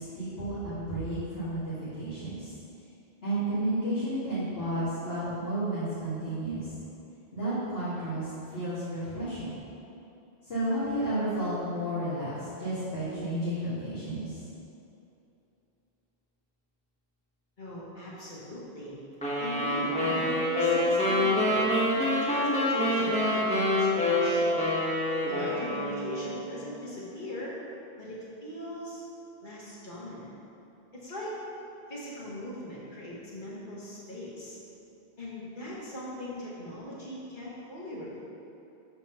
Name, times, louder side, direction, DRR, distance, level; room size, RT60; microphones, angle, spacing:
voice 1, 0.0-2.5 3.2-6.6 7.3-9.5 10.4-14.4, right 1 dB, 75° left, -13 dB, 2.0 m, -32 dB
voice 2, 17.6-19.0 19.4-21.6 22.2-24.6 25.3-27.5 28.0-29.0 29.4-30.3 30.9-31.3 31.9-34.6 35.2-38.2, left 1 dB, 50° left, -7 dB, 1.6 m, -39 dB
sound 1, 19.2-26.4, left 1 dB, 5° left, 1.0 m, -26 dB
5.5 x 4.5 x 5.5 m, 2.9 s
omnidirectional pair, 1.0 m